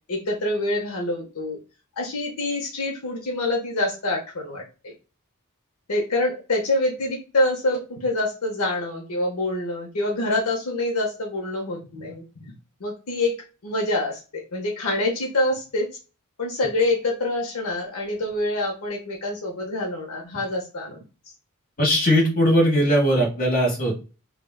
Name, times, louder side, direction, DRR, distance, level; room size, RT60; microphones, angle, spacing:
voice 1, 0.1-1.6 2.0-4.9 5.9-12.5 12.8-13.3 13.6-15.9 16.4-21.0, left 2 dB, 80° left, 0 dB, 0.8 m, -26 dB
voice 2, 21.8-24.0, equal, 40° left, 0 dB, 1.1 m, -19 dB
3.4 x 2.3 x 2.2 m, 0.32 s
head